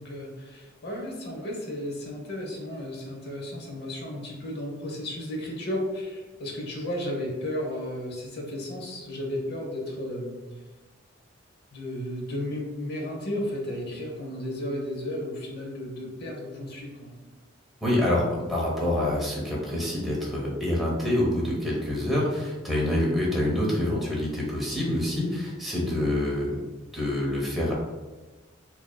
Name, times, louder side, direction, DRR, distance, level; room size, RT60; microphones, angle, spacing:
voice 1, 0.0-10.4 11.7-17.1, left 1 dB, 55° left, 0 dB, 0.9 m, -34 dB
voice 2, 17.8-26.5 26.9-27.7, left 1 dB, ahead, -5 dB, 0.9 m, -26 dB
4.7 x 2.8 x 2.2 m, 1.2 s
head